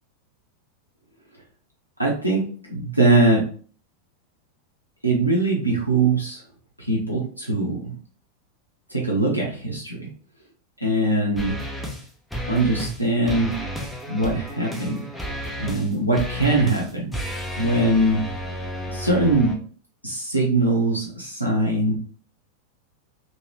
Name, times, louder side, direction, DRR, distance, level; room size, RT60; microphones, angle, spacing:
voice 1, 2.0-2.4 2.7-3.4 5.0-6.4 6.9-7.9 8.9-10.1 10.8-11.5 12.5-13.5 14.1-15.0 15.6-17.1 17.6-18.2 18.9-19.5 20.0-21.9, right 2 dB, 90° right, -3 dB, 0.9 m, -21 dB
sound 1, 11.4-12.0 12.3-13.0 13.2-19.5, equal, ahead, 0.7 m, -32 dB
3.1 x 2.9 x 3.1 m, 0.42 s
figure-of-eight pair, 90°, 0 cm